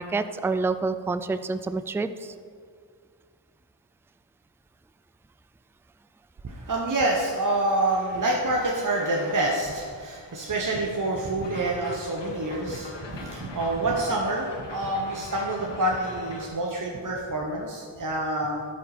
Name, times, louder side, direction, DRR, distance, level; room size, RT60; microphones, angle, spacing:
voice 1, 0.0-2.3, right 3 dB, 5° right, 11 dB, 0.3 m, -28 dB
voice 2, 6.4-18.7, right 2 dB, 50° right, -2 dB, 1.1 m, -27 dB
sound 1, 11.4-16.5, left 2 dB, 85° left, 1.5 m, -42 dB
12.5 x 5.6 x 5.0 m, 2.1 s
wide cardioid pair, 65°, 42 cm